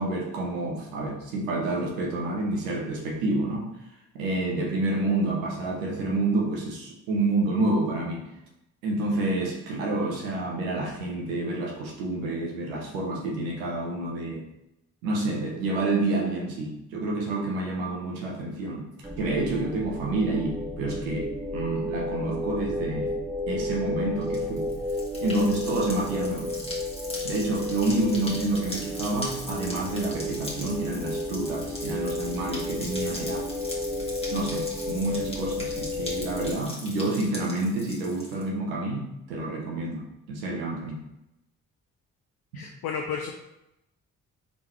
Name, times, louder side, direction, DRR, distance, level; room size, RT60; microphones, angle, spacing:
voice 1, 0.0-3.7 4.1-8.2 8.8-14.5 15.0-18.9 19.2-23.1 23.5-24.7 25.2-26.5 27.2-33.5 34.3-41.0, right 2 dB, 90° right, -1 dB, 0.9 m, -28 dB
sound 1, 19.0-36.5, left 1 dB, 5° right, 0.6 m, -32 dB
sound 2, 24.2-38.4, left 1 dB, 15° left, 1.5 m, -40 dB
voice 2, 42.5-43.3, left 6 dB, 65° left, 0 dB, 0.7 m, -32 dB
3.7 x 3.7 x 3.1 m, 0.87 s
hypercardioid pair, 45°, 40 cm